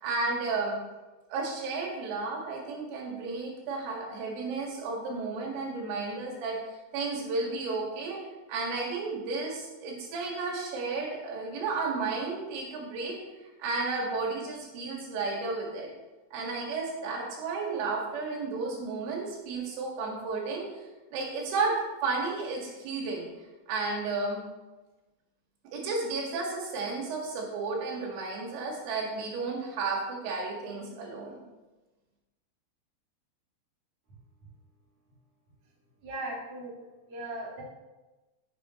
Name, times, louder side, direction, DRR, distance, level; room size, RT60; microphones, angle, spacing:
voice 1, 0.0-0.8 1.3-8.2 8.5-13.2 13.6-15.9 16.3-20.7 21.1-21.8 22.0-23.3 23.7-24.4 25.7-31.4, right 3 dB, 85° right, -1 dB, 4.4 m, -33 dB
voice 2, 36.0-36.7 37.1-37.6, right 1 dB, 40° right, -5 dB, 3.3 m, -37 dB
13.0 x 8.5 x 3.1 m, 1.1 s
omnidirectional pair, 5.6 m